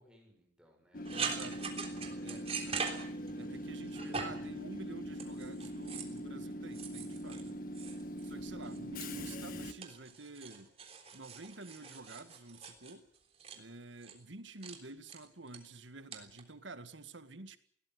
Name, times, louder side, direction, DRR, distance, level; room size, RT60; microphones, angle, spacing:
voice 1, 0.0-1.2 2.3-2.8, equal, 5° right, 1 dB, 7.0 m, -64 dB
Train / Subway metro underground, 0.9-9.7, equal, 50° left, 1.7 m, -42 dB
sound 1, 1.0-3.6 3.9-4.5 5.1-6.2 6.7-8.3 8.6-9.5 9.8-13.6 14.0-14.2 14.6-14.8 15.1-15.6 16.1-16.4, right 5 dB, 35° right, 3.4 m, -42 dB
voice 2, 1.1-1.8 2.2-2.9 3.4-7.6 8.2-10.7 11.1-13.1 13.6-17.6, right 2 dB, 90° right, 11 dB, 1.8 m, -49 dB
21.0 x 17.5 x 9.6 m, 0.64 s
head